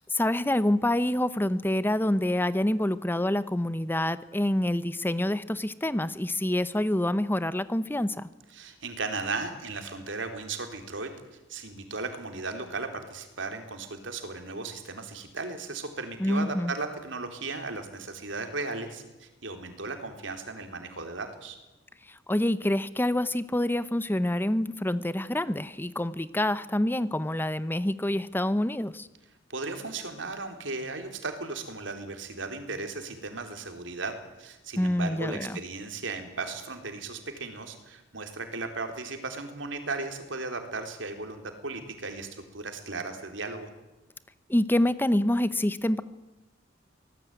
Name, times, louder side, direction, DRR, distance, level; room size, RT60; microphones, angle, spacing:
voice 1, 0.1-8.3 16.2-16.7 22.1-29.1 34.8-35.6 44.5-46.0, left 1 dB, 10° left, 14 dB, 0.8 m, -27 dB
voice 2, 8.5-11.1 11.5-21.6 29.5-43.7, right 3 dB, 80° right, 6 dB, 4.0 m, -36 dB
24.5 x 19.0 x 9.2 m, 1.0 s
head